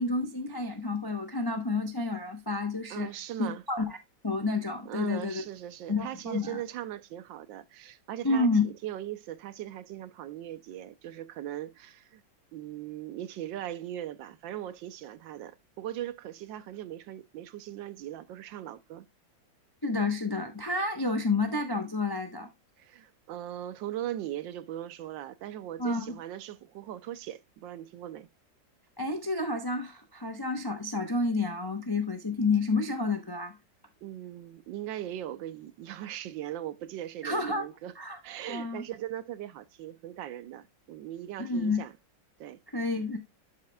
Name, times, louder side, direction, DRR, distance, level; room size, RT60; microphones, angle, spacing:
voice 1, 0.0-3.1 3.4-4.0 4.2-5.4 5.9-6.6 8.2-8.7 19.8-22.5 25.8-26.2 29.0-33.6 37.2-37.7 37.9-38.2 38.5-38.8 41.4-41.8 42.7-43.2, left 3 dB, 40° left, 0.3 m, -29 dB
voice 2, 2.9-3.6 4.9-12.2 12.5-19.1 22.8-28.3 34.0-37.9 38.2-42.0 42.4-42.6, right 12 dB, 80° right, 1.3 m, -39 dB
11.5 x 5.7 x 2.2 m
omnidirectional pair, 2.1 m